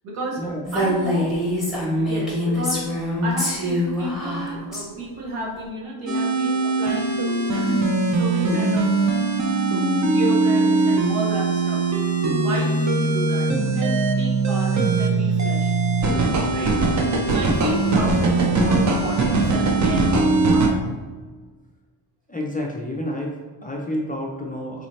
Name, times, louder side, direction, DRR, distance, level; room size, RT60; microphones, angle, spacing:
voice 1, 0.0-0.4 0.7-1.4 2.0-2.9 3.2-7.1 7.5-8.9 10.0-11.9 12.4-15.7 16.5-16.8 17.3-20.8, right 1 dB, 85° right, -3 dB, 1.2 m, -31 dB
Female speech woman speaking, 0.7-4.8, left 1 dB, ahead, 1.1 m, -24 dB
sound 1, 6.1-20.7, right 3 dB, 35° right, 0.5 m, -21 dB
voice 2, 22.3-24.9, left 1 dB, 20° left, -2 dB, 0.4 m, -29 dB
4.0 x 2.7 x 3.1 m, 1.4 s
cardioid pair, 120°, 50 cm